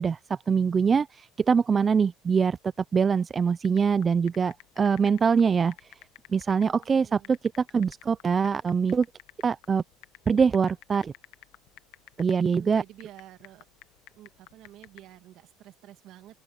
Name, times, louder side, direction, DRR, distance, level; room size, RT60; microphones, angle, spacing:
voice 1, 0.0-2.6 2.9-5.7 6.3-9.1 9.4-9.8 10.3-11.1 12.2-12.8, right 6 dB, 20° right, 0.4 m, -23 dB
sound 1, 3.6-15.2, left 19 dB, 75° left, 1.2 m, -51 dB
voice 2, 6.6-7.3 12.5-13.6 14.2-16.4, right 13 dB, 55° right, 2.3 m, -50 dB
open air
cardioid pair, 150°, 0 cm